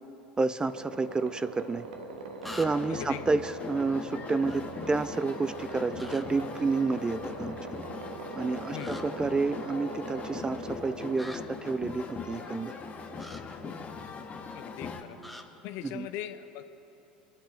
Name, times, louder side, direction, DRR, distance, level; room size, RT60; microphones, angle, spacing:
voice 1, 0.4-1.9 2.6-7.6 8.4-12.7 15.8-16.1, right 3 dB, 15° right, 15 dB, 0.4 m, -30 dB
sound 1, 0.6-13.2, right 4 dB, 75° right, 1.2 m, -42 dB
sound 2, 2.4-15.0, left 5 dB, 30° left, 1.4 m, -41 dB
sound 3, 2.4-3.0 4.5-4.6 6.0-6.3 8.8-9.0 11.2-11.4 13.2-13.4 15.2-15.4, left 1 dB, ahead, 1.0 m, -44 dB
voice 2, 2.9-3.3 8.7-9.0 14.5-15.2 15.6-16.7, left 12 dB, 55° left, 10 dB, 0.8 m, -40 dB
25.5 x 10.5 x 3.7 m, 3.0 s
hypercardioid pair, 75°, 5 cm